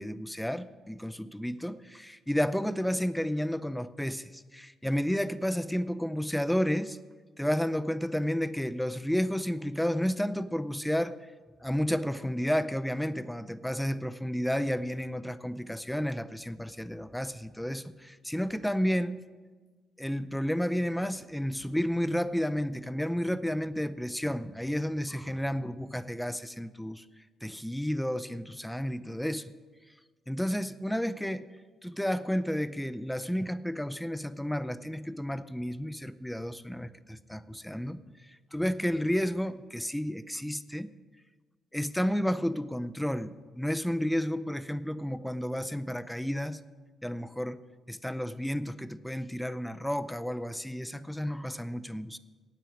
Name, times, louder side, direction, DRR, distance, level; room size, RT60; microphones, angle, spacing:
voice 1, 0.0-7.0 7.4-11.2 11.6-19.2 20.0-27.0 27.4-29.5 30.3-31.4 31.8-38.0 38.5-40.9 41.7-46.6 47.0-47.6 47.9-52.2, equal, 5° left, 14 dB, 0.5 m, -31 dB
9.0 x 8.7 x 7.2 m, 1.4 s
cardioid pair, 90°, 0 cm